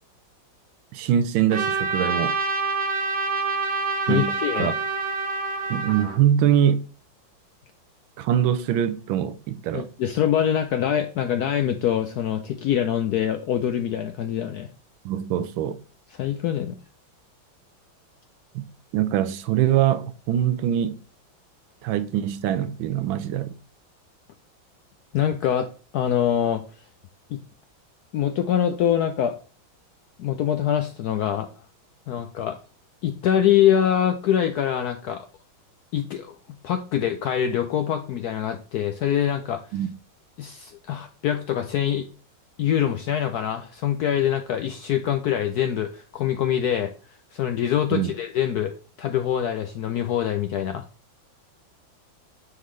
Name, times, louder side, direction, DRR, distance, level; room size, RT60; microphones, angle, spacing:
voice 1, 0.9-2.3 4.1-4.7 5.7-6.9 8.2-9.9 15.0-15.8 18.5-18.7 18.9-21.0 21.8-23.5 39.7-39.9 47.9-48.1, right 10 dB, 80° right, 1.4 m, -23 dB
Trumpet, 1.5-6.2, right 3 dB, 35° right, 1.3 m, -26 dB
voice 2, 4.1-4.7 9.7-14.7 16.1-16.8 25.1-26.6 27.3-27.4 28.1-29.3 30.2-31.5 32.1-32.6 33.0-35.2 35.9-36.3 36.6-39.6 40.4-42.1 42.6-46.9 47.3-50.9, left 10 dB, 75° left, 0.9 m, -24 dB
9.3 x 3.9 x 3.1 m
omnidirectional pair, 2.2 m